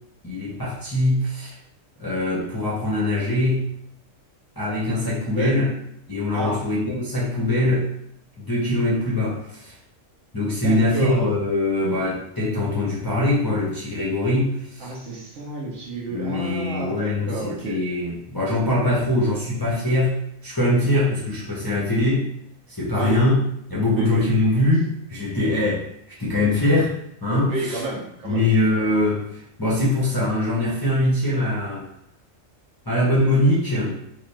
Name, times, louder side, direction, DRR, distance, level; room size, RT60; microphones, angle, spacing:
voice 1, 0.2-1.5 2.0-3.6 4.6-5.7 6.1-7.9 8.4-9.7 10.3-14.9 16.1-22.3 22.8-23.4 23.7-25.9 26.2-27.8 28.2-31.9 32.9-34.0, left 1 dB, 20° left, -7 dB, 0.6 m, -22 dB
voice 2, 6.3-6.6 10.6-11.2 14.8-17.8 23.0-23.2 23.9-24.3 27.5-28.4, right 2 dB, 65° right, -3 dB, 1.2 m, -30 dB
4.2 x 2.5 x 3.2 m, 0.73 s
omnidirectional pair, 1.4 m